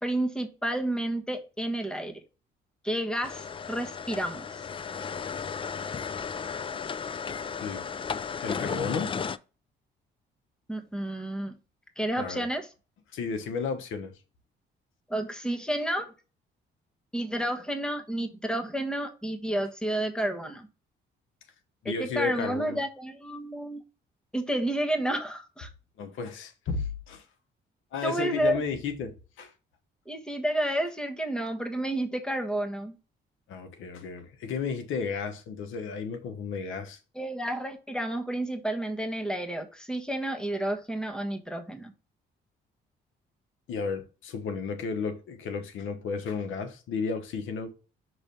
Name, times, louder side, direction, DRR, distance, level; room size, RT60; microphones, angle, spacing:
voice 1, 0.0-2.2 2.8-4.7 10.7-11.6 12.0-12.7 15.1-16.1 17.1-20.7 21.8-23.8 24.3-25.7 28.0-28.6 30.1-33.0 37.1-41.9, right 1 dB, 5° left, 1.3 m, -30 dB
sound 1, 3.2-9.4, left 6 dB, 25° left, 0.4 m, -34 dB
voice 2, 8.4-9.1 12.2-12.5 13.1-14.1 21.8-22.8 26.0-27.2 27.9-29.5 33.5-37.0 43.7-47.7, left 5 dB, 80° left, 1.2 m, -33 dB
6.1 x 3.2 x 5.4 m
cardioid pair, 90°, 20 cm